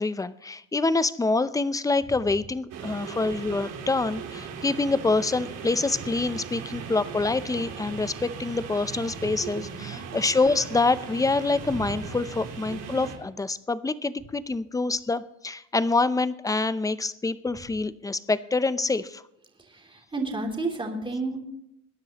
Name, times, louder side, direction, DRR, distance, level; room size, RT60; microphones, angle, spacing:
voice 1, 0.0-19.2, left 3 dB, 10° left, 15 dB, 0.5 m, -26 dB
sound 1, 2.7-13.2, right 6 dB, 65° right, 3.2 m, -38 dB
voice 2, 19.6-21.4, right 2 dB, 15° right, 1 dB, 3.0 m, -31 dB
21.5 x 10.5 x 2.9 m, 0.83 s
cardioid pair, 110°, 35 cm